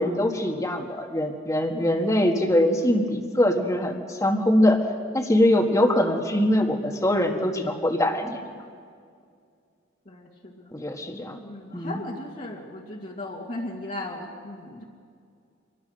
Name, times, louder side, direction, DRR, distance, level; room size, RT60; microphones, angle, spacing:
voice 1, 0.0-4.8 5.1-8.5 10.7-11.4 11.7-12.0, left 1 dB, 15° left, 4 dB, 1.7 m, -23 dB
voice 2, 10.1-10.7 11.4-14.8, left 1 dB, 45° left, -2 dB, 2.2 m, -37 dB
26.0 x 20.5 x 6.5 m, 2.2 s
head